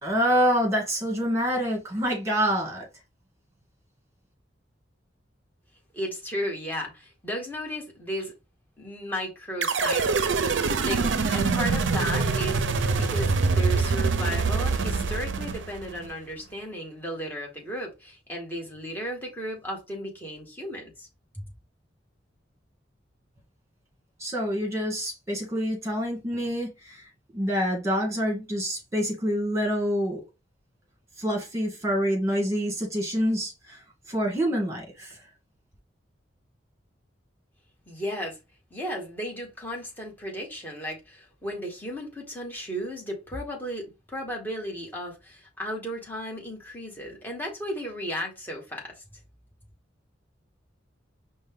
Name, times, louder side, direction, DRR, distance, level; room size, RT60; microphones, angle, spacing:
voice 1, 0.0-2.9 24.2-30.2 31.2-33.8 34.1-35.2, equal, 15° right, 1.7 m, -27 dB
voice 2, 5.9-8.3 8.8-10.3 10.8-12.6 12.9-21.1 37.9-38.4 38.7-48.9, equal, 10° left, 1.4 m, -34 dB
sound 1, 9.6-16.1, right 4 dB, 80° right, 0.5 m, -25 dB
5.3 x 2.2 x 3.6 m
head